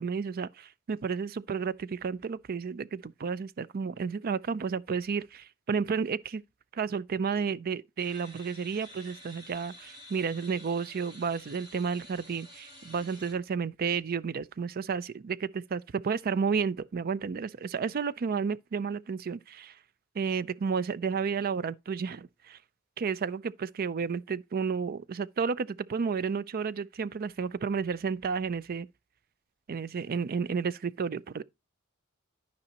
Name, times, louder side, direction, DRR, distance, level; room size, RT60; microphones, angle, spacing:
voice 1, 0.0-6.4 6.7-19.7 20.2-22.6 23.0-28.9 29.7-31.4, right 5 dB, 45° right, 0.4 m, -32 dB
sound 1, 8.0-13.3, left 1 dB, 20° right, 2.4 m, -50 dB
12.5 x 5.3 x 2.9 m
head